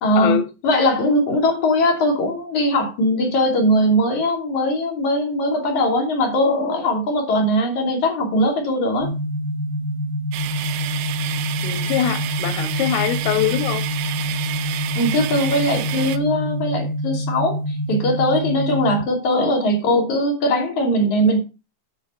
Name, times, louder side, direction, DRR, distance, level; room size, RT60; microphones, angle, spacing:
voice 1, 0.0-0.4 0.6-9.1 14.9-21.4, left 1 dB, 45° left, 3.4 m, -20 dB
sound 1, 9.0-19.0, equal, 60° right, 2.5 m, -26 dB
sound 2, 10.3-16.2, right 14 dB, 80° right, 2.6 m, -30 dB
voice 2, 11.6-13.9, left 11 dB, 80° left, 3.8 m, -23 dB
10.5 x 6.8 x 5.6 m
omnidirectional pair, 5.9 m